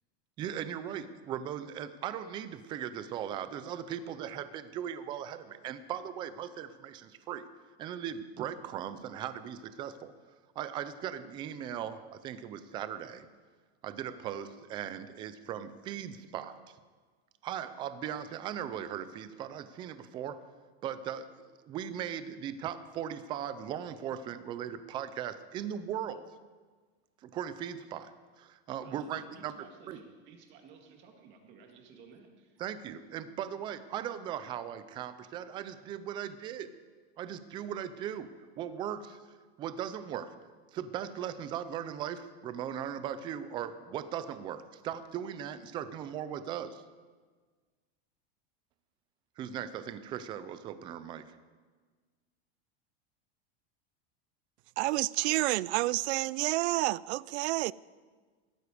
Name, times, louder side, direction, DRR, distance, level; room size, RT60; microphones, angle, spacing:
voice 1, 0.4-7.5 7.8-10.1 10.6-13.3 13.8-16.8 17.4-20.4 20.8-21.3 21.7-26.2 27.2-28.1 28.4-29.6 29.9-30.0 32.6-36.7 37.2-39.2 39.6-40.3 40.7-46.8 49.4-51.4, right 9 dB, 15° right, 0.3 m, -38 dB
voice 2, 28.8-32.6, right 5 dB, 35° right, 2.0 m, -55 dB
voice 3, 54.8-57.7, right 19 dB, 90° right, 0.5 m, -29 dB
16.0 x 13.0 x 4.9 m
supercardioid pair, 170°, 32 cm